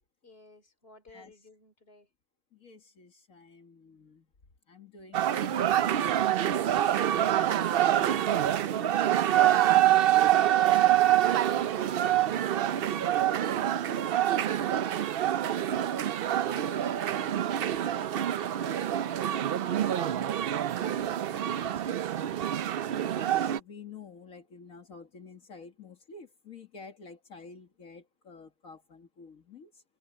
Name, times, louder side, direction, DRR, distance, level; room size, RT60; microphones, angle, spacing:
voice 1, 0.2-2.1 11.2-12.2 14.3-14.9 16.5-19.1 19.6-20.3 23.0-23.4, left 2 dB, 45° left, 3.4 m, -53 dB
voice 2, 1.1-1.5 2.5-4.3 4.7-6.5 6.8-9.8 11.5-11.7 12.0-13.3 14.5-15.0 16.2-16.5 19.6-20.4 20.8-22.5 23.1-29.8, left 4 dB, 75° left, 2.3 m, -50 dB
sound 1, 5.1-23.6, right 12 dB, 60° right, 0.6 m, -26 dB
omnidirectional pair, 1.4 m